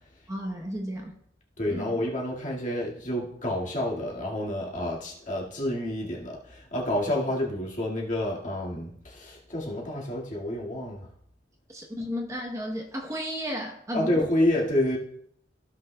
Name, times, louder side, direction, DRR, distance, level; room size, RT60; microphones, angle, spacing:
voice 1, 0.3-1.1 1.7-1.9 11.7-14.3, equal, 15° right, 2 dB, 0.9 m, -33 dB
voice 2, 1.6-11.1 13.9-15.0, left 1 dB, 45° left, -3 dB, 2.0 m, -29 dB
15.5 x 5.9 x 2.3 m, 0.71 s
head